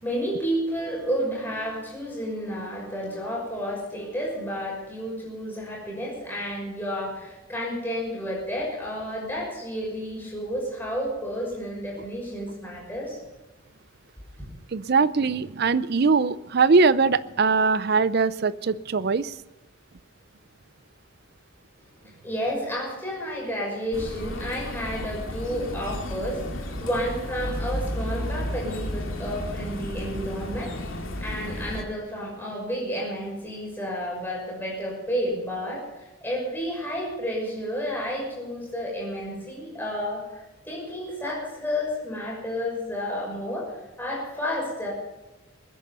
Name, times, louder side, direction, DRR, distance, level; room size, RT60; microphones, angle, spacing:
voice 1, 0.0-13.2 22.0-44.9, equal, 10° left, -3 dB, 6.1 m, -31 dB
voice 2, 14.7-19.4, right 4 dB, 50° right, 17 dB, 0.5 m, -21 dB
sound 1, 23.9-31.8, left 1 dB, 70° left, 2.4 m, -33 dB
21.5 x 10.0 x 5.5 m, 1.0 s
head